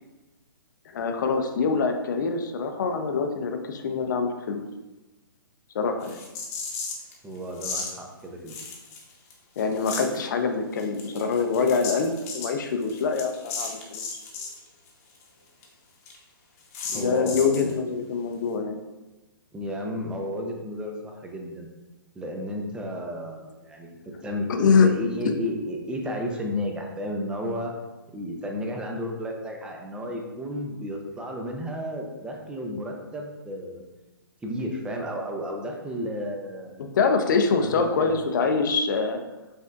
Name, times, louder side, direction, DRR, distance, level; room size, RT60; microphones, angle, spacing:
voice 1, 0.9-4.6 5.7-6.2 9.6-14.0 16.9-18.8 24.5-24.9 25.2-25.3 36.8-39.2, left 5 dB, 55° left, 6 dB, 0.5 m, -24 dB
sound 1, 6.0-7.1 7.6-7.9 8.5-9.3 9.6-10.2 10.8-14.6 14.9-15.0 15.2-15.3 15.6-15.7 16.1-16.2 16.7-17.7, left 4 dB, 35° left, 0.9 m, -35 dB
voice 2, 7.2-8.6 16.9-17.7 19.5-21.7 22.1-27.7 28.1-33.8 34.4-37.0 37.6-38.2, equal, 5° right, 1 dB, 0.5 m, -33 dB
5.3 x 3.3 x 2.4 m, 1.1 s
hypercardioid pair, 135°, 12 cm